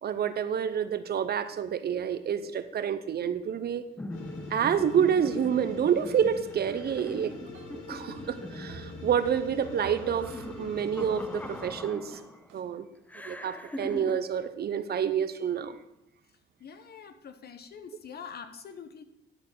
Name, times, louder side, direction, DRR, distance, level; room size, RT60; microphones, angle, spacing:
voice 1, 0.0-3.8 4.5-7.3 7.9-12.2 12.5-12.9 13.2-15.8, right 8 dB, 50° right, 12 dB, 0.7 m, -28 dB
sound 1, 4.0-12.5 13.1-14.2, left 1 dB, 10° left, 0.6 m, -41 dB
sound 2, 4.1-11.7, left 3 dB, 90° left, 2.1 m, -45 dB
sound 3, 7.5-11.8 12.1-12.6, right 3 dB, 75° right, 1.4 m, -49 dB
voice 2, 16.6-19.0, left 6 dB, 55° left, 10 dB, 1.0 m, -45 dB
11.5 x 4.1 x 6.7 m, 0.85 s
cardioid pair, 90°, 20 cm